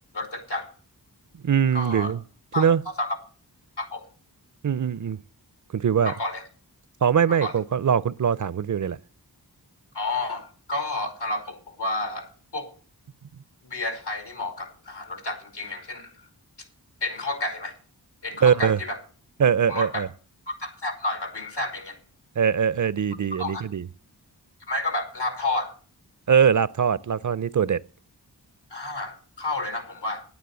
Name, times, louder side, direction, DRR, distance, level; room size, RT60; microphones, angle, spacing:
voice 1, 0.1-0.7 1.7-2.1 2.5-2.7 3.0-3.2 3.8-4.0 6.0-6.4 7.4-7.5 9.9-12.7 13.6-16.1 17.0-17.7 18.2-19.0 19.7-20.0 20.5-22.0 23.4-23.6 24.7-25.7 28.7-30.2, left 2 dB, 90° left, 3.0 m, -30 dB
voice 2, 1.4-2.2 2.6-2.8 4.6-5.2 5.7-6.1 7.0-9.0 18.4-18.8 19.4-20.1 22.4-23.9 26.3-27.8, right 7 dB, 50° right, 0.5 m, -22 dB
9.5 x 9.5 x 7.7 m
wide cardioid pair, 60°, 40 cm